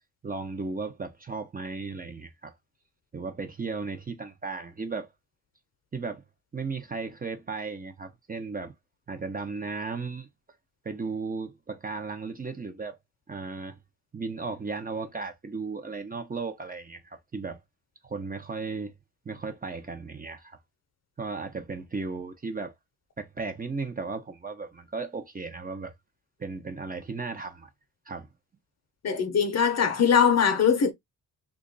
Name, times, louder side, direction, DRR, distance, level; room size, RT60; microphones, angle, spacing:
voice 1, 0.2-2.5 3.1-5.1 5.9-6.2 6.5-8.7 9.1-10.3 10.8-13.0 13.3-13.8 14.1-17.6 18.0-18.9 19.3-20.6 21.2-22.7 23.2-25.9 26.4-27.7 28.1-28.3, right 4 dB, 25° right, 0.6 m, -35 dB
voice 2, 29.0-30.9, left 7 dB, 45° left, 0.8 m, -21 dB
2.9 x 2.4 x 3.9 m
cardioid pair, 100°, 37 cm